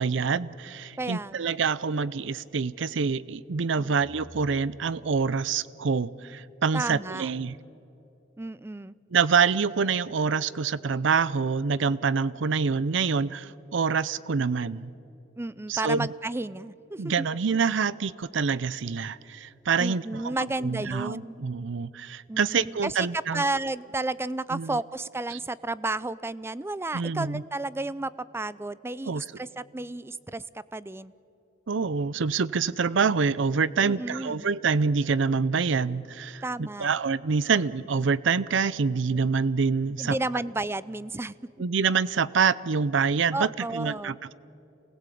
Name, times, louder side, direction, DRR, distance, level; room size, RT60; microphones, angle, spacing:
voice 1, 0.0-7.6 9.1-14.9 15.7-16.1 17.0-23.4 24.5-24.8 25.3-25.4 26.9-27.4 29.1-29.2 31.7-40.2 41.6-44.3, right 5 dB, 70° right, 19 dB, 0.6 m, -26 dB
voice 2, 1.0-1.6 3.8-3.9 6.7-7.3 8.4-9.0 15.4-17.3 19.8-21.4 22.3-30.4 30.7-31.1 33.8-34.5 36.4-36.9 40.0-41.3 43.3-44.2, right 2 dB, 15° right, 18 dB, 0.5 m, -32 dB
sound 1, 4.0-6.2, left 1 dB, 35° left, 1.6 m, -52 dB
28.0 x 20.0 x 8.5 m, 2.9 s
head